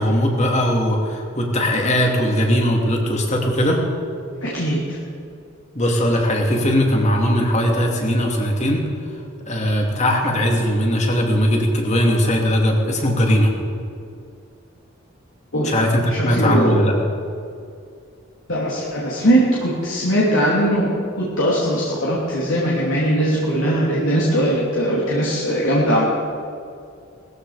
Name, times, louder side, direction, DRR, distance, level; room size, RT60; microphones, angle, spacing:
voice 1, 0.0-3.8 5.7-8.8 9.5-13.5 15.6-17.0, equal, 35° left, 0 dB, 2.7 m, -19 dB
voice 2, 4.4-5.0 15.5-15.8 16.1-16.8 18.5-26.0, right 1 dB, 70° left, -6 dB, 3.0 m, -20 dB
19.0 x 15.0 x 5.0 m, 2.4 s
head